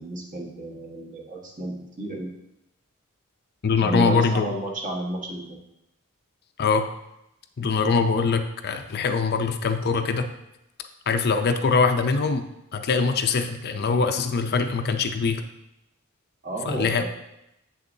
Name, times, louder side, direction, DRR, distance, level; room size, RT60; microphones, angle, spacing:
voice 1, 0.0-2.3 3.8-5.6 16.4-17.1, right 1 dB, 35° right, -1 dB, 1.3 m, -32 dB
voice 2, 3.6-4.5 6.6-6.9 7.6-10.3 11.1-12.5 12.7-15.4 16.7-17.1, left 4 dB, 50° left, 7 dB, 0.5 m, -23 dB
8.1 x 6.6 x 2.7 m, 0.84 s
head